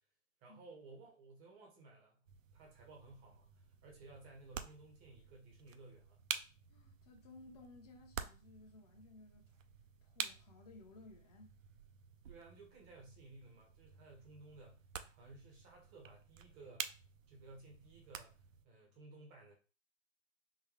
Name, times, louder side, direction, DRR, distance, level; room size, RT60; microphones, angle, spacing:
voice 1, 0.4-2.2 2.5-6.2 12.3-14.8 15.1-17.0 17.3-19.5, right 3 dB, 15° right, 0.6 m, -57 dB
sound 1, 2.3-18.6, right 8 dB, 80° right, 0.5 m, -50 dB
voice 2, 6.7-9.6 10.0-11.5, left 2 dB, 30° left, 0.6 m, -58 dB
3.8 x 2.1 x 3.1 m
hypercardioid pair, 145°, 39 cm